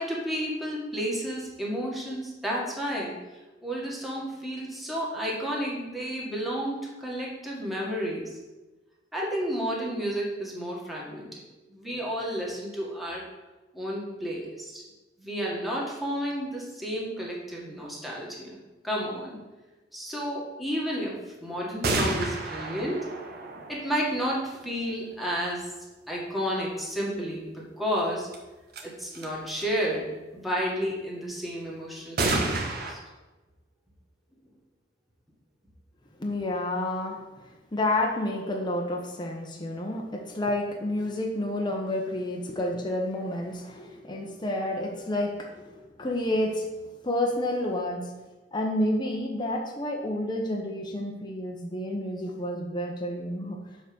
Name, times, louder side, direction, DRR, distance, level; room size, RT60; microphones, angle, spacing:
voice 1, 0.0-3.1 3.6-8.4 9.1-11.4 11.7-13.2 13.7-14.8 15.2-18.6 18.8-19.4 19.9-25.7 26.1-28.3 28.8-33.0, equal, ahead, -5 dB, 1.9 m, -31 dB
sound 1, 21.8-24.7 28.3-28.4 28.7-28.8 29.1-29.6 32.2-32.9, right 2 dB, 55° right, 1.2 m, -30 dB
voice 2, 36.2-37.2 37.7-46.6 47.0-48.1 48.5-53.6, left 1 dB, 25° left, 0 dB, 0.9 m, -30 dB
6.9 x 4.9 x 6.9 m, 1.1 s
head